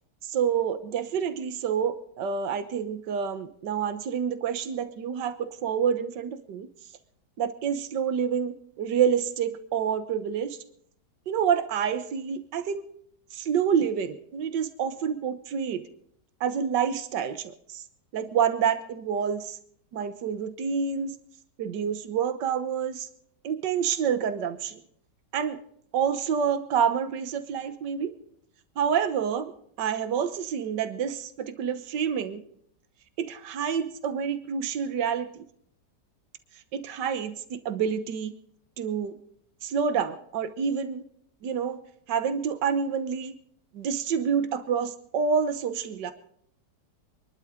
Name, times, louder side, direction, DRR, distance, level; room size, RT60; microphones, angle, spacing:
voice 1, 0.3-6.7 7.4-10.6 11.3-12.8 13.3-15.8 16.4-17.8 18.1-19.6 19.9-21.2 21.6-23.1 23.4-24.8 25.3-25.6 25.9-28.1 28.8-29.5 29.8-32.4 33.2-35.4 36.7-38.3 38.8-39.2 39.6-41.0 41.4-41.8 42.1-43.3 43.7-46.1, right 7 dB, 75° right, 11 dB, 1.7 m, -28 dB
25.5 x 11.5 x 3.7 m, 0.65 s
omnidirectional pair, 1.9 m